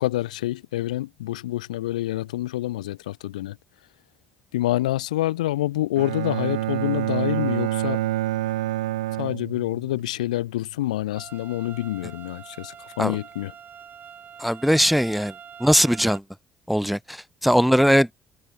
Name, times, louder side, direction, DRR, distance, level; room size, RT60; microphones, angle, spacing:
voice 1, 0.0-3.6 4.5-8.0 9.2-13.5, left 15 dB, 85° left, 2.3 m, -27 dB
Bowed string instrument, 6.0-10.0, right 15 dB, 85° right, 0.5 m, -27 dB
sound 1, 11.2-16.2, right 8 dB, 50° right, 7.2 m, -44 dB
voice 2, 14.4-15.3 15.6-16.2 16.7-18.1, equal, ahead, 0.9 m, -20 dB
hypercardioid pair, 50°, 4 cm